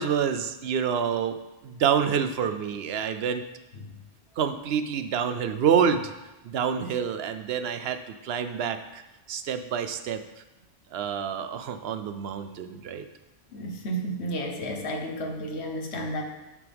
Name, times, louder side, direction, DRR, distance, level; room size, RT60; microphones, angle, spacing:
voice 1, 0.0-3.4 4.4-6.1 6.4-9.0 9.3-10.2 10.9-13.0, right 7 dB, 70° right, 9 dB, 0.8 m, -27 dB
voice 2, 13.5-16.2, right 1 dB, 80° left, 3 dB, 1.3 m, -32 dB
9.5 x 6.2 x 3.5 m, 1.0 s
omnidirectional pair, 1.1 m